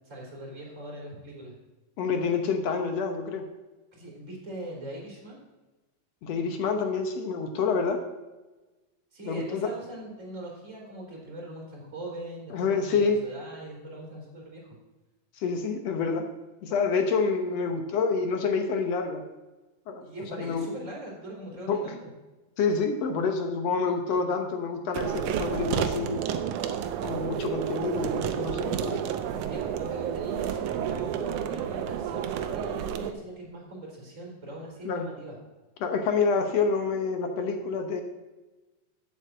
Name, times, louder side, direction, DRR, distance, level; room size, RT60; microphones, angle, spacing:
voice 1, 0.1-1.6 3.9-5.4 9.1-14.7 20.0-22.1 29.5-35.4, right 1 dB, 20° right, -2 dB, 3.8 m, -41 dB
voice 2, 2.0-3.4 6.2-8.0 9.2-9.7 12.5-13.2 15.4-16.3 16.6-19.2 19.9-20.1 20.3-20.7 21.7-21.9 22.6-26.2 27.0-29.0 34.9-35.1 35.8-38.0, left 5 dB, 65° left, 5 dB, 1.8 m, -27 dB
sound 1, 24.9-33.1, right 9 dB, 75° right, 2.1 m, -30 dB
8.5 x 8.1 x 7.6 m, 1.1 s
omnidirectional pair, 3.8 m